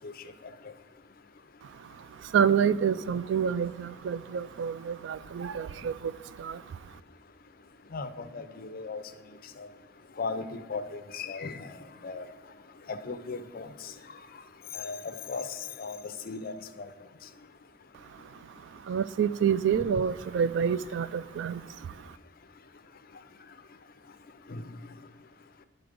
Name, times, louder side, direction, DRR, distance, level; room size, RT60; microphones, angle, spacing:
voice 1, 2.3-5.9 6.4-6.6 18.9-21.6, right 7 dB, 65° right, 17 dB, 0.3 m, -27 dB
voice 2, 7.9-9.0 10.2-11.7 12.0-12.3 12.9-13.7 14.7-15.5 15.8-16.0 16.3-16.5 16.8-16.9 24.5-24.6, left 4 dB, 50° left, 10 dB, 0.6 m, -36 dB
11.0 x 3.9 x 5.1 m, 1.4 s
head